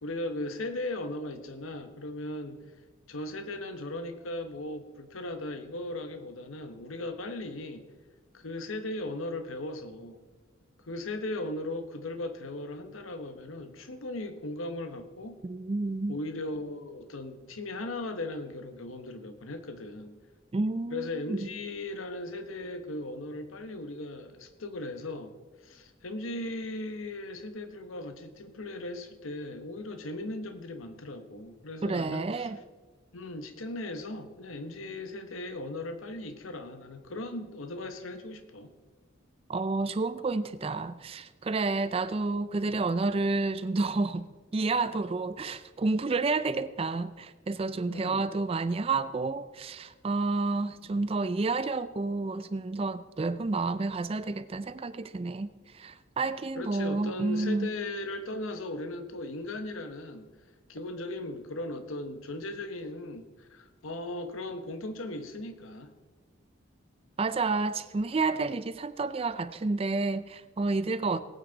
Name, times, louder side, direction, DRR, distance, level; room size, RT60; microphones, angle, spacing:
voice 1, 0.0-2.6 3.1-7.8 8.3-10.2 10.8-15.4 16.1-20.1 20.9-25.3 25.6-32.5 33.1-38.7 47.9-48.3 56.6-60.3 60.7-65.9 71.1-71.2, left 2 dB, 85° left, 1.0 m, -37 dB
voice 2, 15.4-16.2 20.5-21.5 31.8-32.6 39.5-44.3 44.5-57.7 67.2-71.2, right 3 dB, 30° right, 0.4 m, -30 dB
18.5 x 9.2 x 4.0 m
head